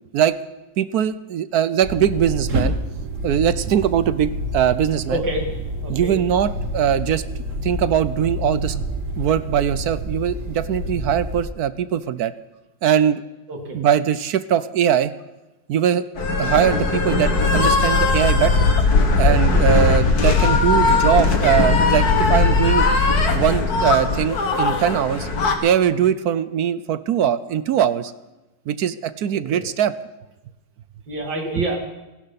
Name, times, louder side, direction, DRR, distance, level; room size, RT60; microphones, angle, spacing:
voice 1, 0.8-2.7 3.2-5.2 5.9-7.2 7.6-8.8 9.2-12.3 12.8-13.2 13.7-15.1 15.7-16.0 16.4-18.7 19.2-22.9 23.3-25.3 25.6-28.1 28.7-29.9, right 9 dB, 65° right, 15 dB, 1.1 m, -21 dB
sound 1, 1.8-11.4, equal, 45° right, 1.9 m, -28 dB
voice 2, 5.1-5.5 5.8-6.1 13.5-13.8 29.3-29.6 31.1-31.8, right 1 dB, 90° right, 2 dB, 3.6 m, -27 dB
sound 2, 16.2-25.5, left 3 dB, 55° left, 2.2 m, -18 dB
28.5 x 12.0 x 4.1 m, 1.1 s
omnidirectional pair, 1.9 m